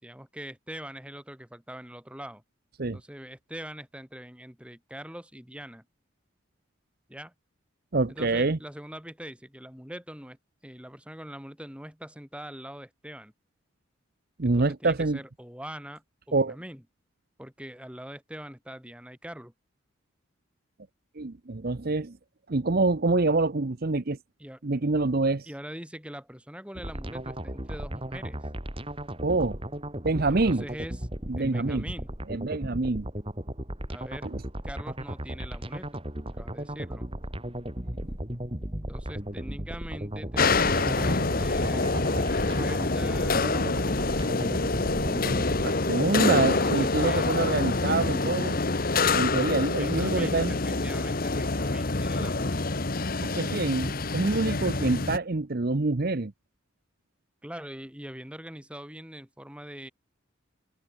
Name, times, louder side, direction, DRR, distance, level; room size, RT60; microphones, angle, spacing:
voice 1, 0.0-2.4 2.9-5.8 7.1-7.3 8.1-10.4 10.6-13.3 14.4-16.8 17.4-19.5 24.4-24.6 25.5-28.4 30.3-31.1 31.4-32.1 33.9-34.3 34.6-36.0 36.3-37.1 38.8-43.7 45.9-47.3 49.8-52.6 57.4-59.9, equal, 5° right, 4.6 m, -43 dB
voice 2, 7.9-8.6 14.4-15.2 16.3-16.6 21.2-22.2 22.5-24.2 24.6-25.5 29.2-29.6 30.0-30.6 31.3-31.8 32.3-33.1 34.2-34.4 45.6-48.6 49.1-50.6 52.2-52.3 53.2-56.3, right 3 dB, 45° right, 0.8 m, -26 dB
sound 1, 26.8-45.7, right 1 dB, 25° right, 3.4 m, -36 dB
sound 2, 40.4-55.2, left 3 dB, 45° left, 1.2 m, -26 dB
head